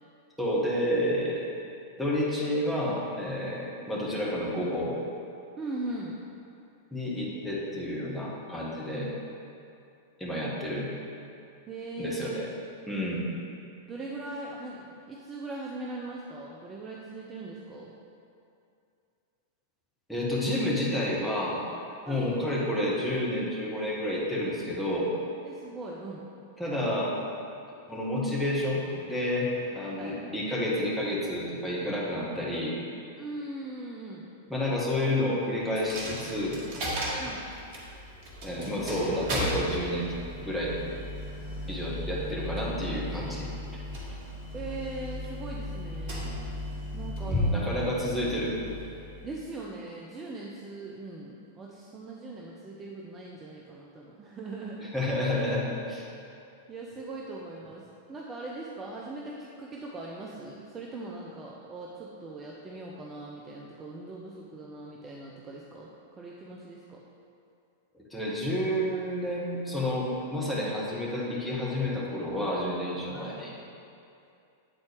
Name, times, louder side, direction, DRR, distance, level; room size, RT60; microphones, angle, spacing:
voice 1, 0.4-1.4 2.0-5.0 6.9-9.1 10.2-10.9 12.0-12.5 12.9-13.2 20.1-21.7 22.1-25.1 26.6-27.2 27.9-29.5 29.7-32.8 34.5-36.6 38.4-40.1 40.4-40.7 41.7-43.5 47.3-48.5 54.9-56.0 68.1-73.5, left 1 dB, 5° left, -6 dB, 1.3 m, -30 dB
voice 2, 5.6-6.2 11.7-12.5 13.9-17.9 22.0-22.3 25.4-26.2 29.5-30.2 33.2-34.3 37.2-37.4 44.5-46.3 46.9-47.9 49.2-54.9 56.7-67.0 73.1-73.3, right 2 dB, 20° right, -3 dB, 0.5 m, -40 dB
Coin (dropping), 35.8-49.5, equal, 45° right, 1.3 m, -35 dB
8.3 x 4.0 x 3.4 m, 2.6 s
figure-of-eight pair, 95°, 0 cm